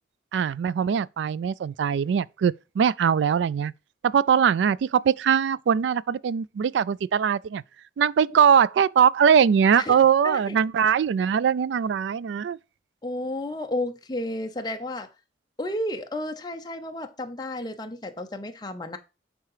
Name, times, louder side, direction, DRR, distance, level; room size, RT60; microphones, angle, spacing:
voice 1, 0.3-3.7 4.0-7.6 8.0-12.6, right 7 dB, 75° right, 0.3 m, -21 dB
voice 2, 10.2-10.6 13.0-15.1 15.6-19.0, left 1 dB, 20° left, 0.7 m, -32 dB
8.7 x 3.7 x 4.9 m
head